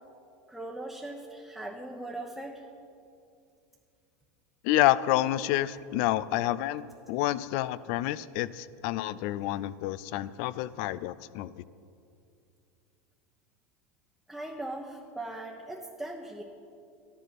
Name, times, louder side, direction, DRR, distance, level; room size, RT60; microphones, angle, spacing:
voice 1, 0.5-2.6 14.3-16.4, right 2 dB, 5° right, -2 dB, 1.1 m, -39 dB
voice 2, 4.6-11.6, left 15 dB, 65° left, 18 dB, 0.5 m, -28 dB
13.0 x 11.5 x 6.0 m, 2.5 s
supercardioid pair, 125°, 8 cm